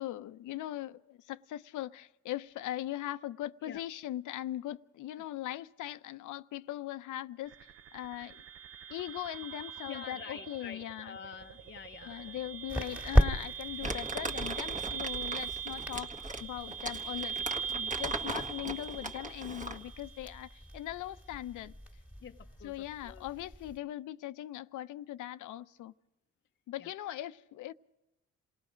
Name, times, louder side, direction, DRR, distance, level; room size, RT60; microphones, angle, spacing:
voice 1, 0.0-7.5 7.9-8.4 8.9-11.2 12.1-21.7 22.6-25.9 26.7-27.7, left 14 dB, 80° left, 0.8 m, -40 dB
sound 1, 7.5-20.5, right 8 dB, 50° right, 0.7 m, -42 dB
voice 2, 9.9-12.4 22.2-23.2 26.8-27.2, left 8 dB, 40° left, 0.7 m, -48 dB
sound 2, 11.4-23.8, equal, 5° right, 2.2 m, -36 dB
Crumpling crinkling, 13.8-19.9, right 2 dB, 25° right, 1.6 m, -39 dB
27.5 x 18.5 x 5.1 m
cardioid pair, 90°, 30 cm